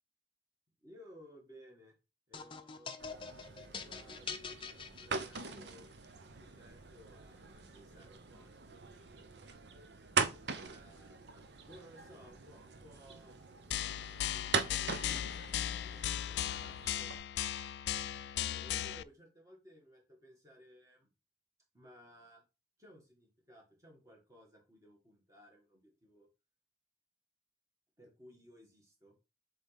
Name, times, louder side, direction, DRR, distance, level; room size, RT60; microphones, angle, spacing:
voice 1, 0.8-1.9 2.3-2.9 3.8-4.4 4.9-5.9 6.4-8.9 10.6-13.3 14.3-17.2 18.5-21.1 21.7-22.4 22.8-26.3 28.0-29.2, equal, 20° right, -1 dB, 2.2 m, -59 dB
sound 1, 2.3-5.7, left 5 dB, 30° left, 0.6 m, -45 dB
sound 2, 3.0-17.2, right 5 dB, 70° right, 0.8 m, -41 dB
sound 3, 13.7-19.0, left 11 dB, 70° left, 0.3 m, -37 dB
7.6 x 3.9 x 3.6 m, 0.28 s
head